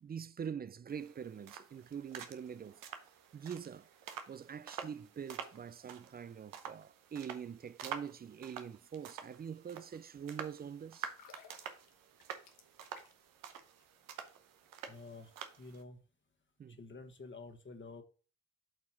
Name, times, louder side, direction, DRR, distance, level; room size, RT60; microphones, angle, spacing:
voice 1, 0.0-3.1 3.3-3.9 4.3-11.1 16.6-16.8, right 7 dB, 30° right, 0.4 m, -44 dB
sound 1, 0.9-15.8, right 8 dB, 85° right, 0.9 m, -49 dB
sound 2, 11.0-13.4 13.7-13.8, left 7 dB, 85° left, 1.1 m, -60 dB
voice 2, 14.9-16.0 16.8-18.0, left 3 dB, 35° left, 1.4 m, -50 dB
7.9 x 2.9 x 5.7 m
supercardioid pair, 50°, 32 cm